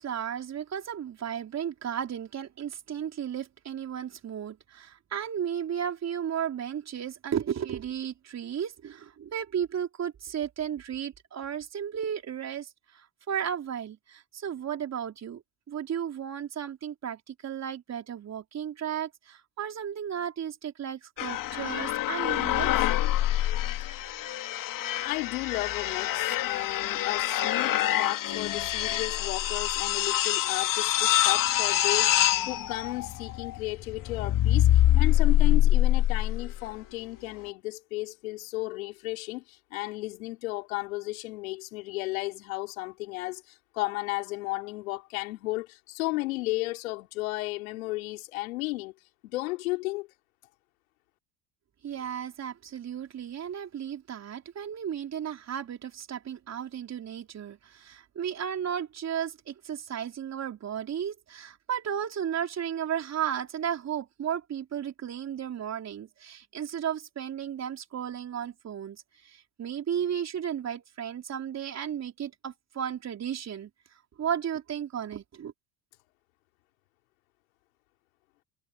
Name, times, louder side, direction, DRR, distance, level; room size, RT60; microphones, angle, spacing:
voice 1, 0.0-15.4 15.7-23.1 51.8-73.7 74.2-75.5, right 9 dB, 40° right, 3.7 m, -34 dB
sound 1, 21.2-36.6, left 13 dB, 50° left, 2.6 m, -25 dB
voice 2, 25.0-48.9 49.2-50.1, left 20 dB, 80° left, 3.6 m, -34 dB
hypercardioid pair, 80°, 40 cm